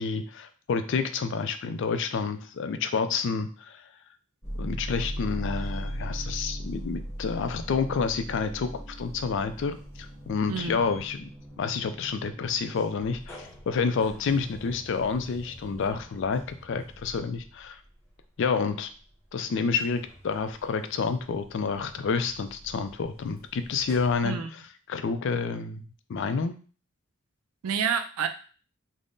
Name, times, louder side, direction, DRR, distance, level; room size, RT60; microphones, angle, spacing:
voice 1, 0.0-3.8 4.6-11.3 11.6-17.8 18.4-18.9 19.3-24.4 24.9-25.8 26.1-26.5, left 5 dB, 60° left, 10 dB, 0.4 m, -29 dB
sound 1, 4.4-19.0 19.4-24.2, equal, 10° left, 0.8 m, -40 dB
voice 2, 10.5-10.8 24.2-24.5 27.6-28.3, right 7 dB, 90° right, 8 dB, 0.4 m, -28 dB
3.6 x 2.1 x 3.8 m, 0.38 s
head